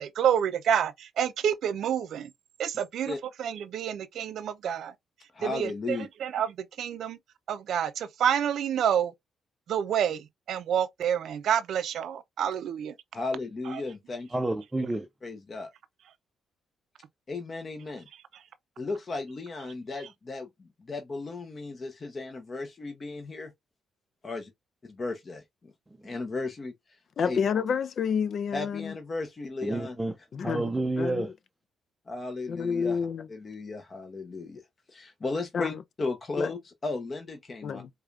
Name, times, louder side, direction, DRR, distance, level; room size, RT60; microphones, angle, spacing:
voice 1, 0.0-2.3 2.6-4.9 5.4-7.2 7.5-9.1 9.7-13.0 13.7-13.8 18.3-18.4, right 9 dB, 70° right, 0.5 m, -28 dB
voice 2, 5.3-6.1 13.1-14.3 15.2-15.7 17.3-18.1 18.8-23.5 24.2-24.5 25.0-25.4 26.0-26.7 27.2-27.4 28.5-30.0 32.1-33.0 33.3-34.6 34.9-37.8, left 3 dB, 35° left, 0.8 m, -35 dB
voice 3, 14.3-15.1 29.6-30.1 30.4-31.3, right 2 dB, 15° right, 0.5 m, -29 dB
voice 4, 27.2-29.0 30.3-30.6 31.0-31.3 32.5-33.3 35.5-35.8 36.4-36.5 37.6-37.9, left 6 dB, 55° left, 0.4 m, -29 dB
4.8 x 2.3 x 2.4 m
cardioid pair, 90°, 0 cm